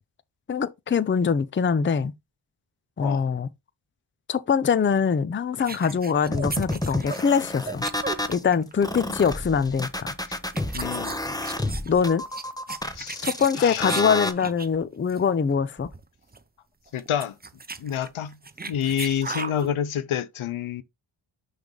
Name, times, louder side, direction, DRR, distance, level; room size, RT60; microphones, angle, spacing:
voice 1, 0.5-2.1 3.0-3.5 4.3-7.8 8.3-10.1 11.9-12.2 13.2-15.9, left 6 dB, 25° left, 0.5 m, -23 dB
sound 1, 5.6-8.7 9.0-9.2 10.0-10.1 10.4-14.8 15.1-15.3 15.5-15.6 15.8-16.0 16.3-16.4 16.9-19.7, right 4 dB, 20° right, 0.7 m, -36 dB
sound 2, 6.3-8.4 8.8-14.3, left 1 dB, 5° left, 1.0 m, -30 dB
voice 2, 10.7-11.2 12.9-13.3 13.6-13.9 16.9-17.3 17.8-18.4 18.7-20.8, left 9 dB, 75° left, 0.8 m, -28 dB
6.0 x 3.4 x 5.3 m
cardioid pair, 75°, 50 cm